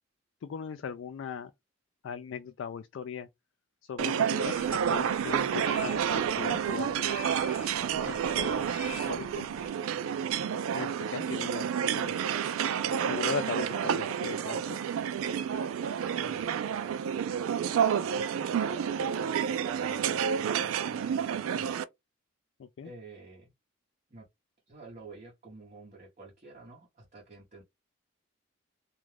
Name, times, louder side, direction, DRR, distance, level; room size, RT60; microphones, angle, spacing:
voice 1, 0.4-1.5 2.0-3.3 3.8-7.3 8.0-9.5 10.7-12.3 13.1-14.8 22.6-22.9, left 7 dB, 65° left, 0.3 m, -39 dB
sound 1, 4.0-21.8, right 8 dB, 85° right, 0.3 m, -30 dB
sound 2, 4.4-9.7, left 3 dB, 30° left, 0.9 m, -47 dB
voice 2, 16.1-16.5 17.2-17.4 18.1-21.8 22.8-23.5 24.1-24.3 24.7-27.6, right 3 dB, 35° right, 0.9 m, -49 dB
2.5 x 2.2 x 3.2 m
head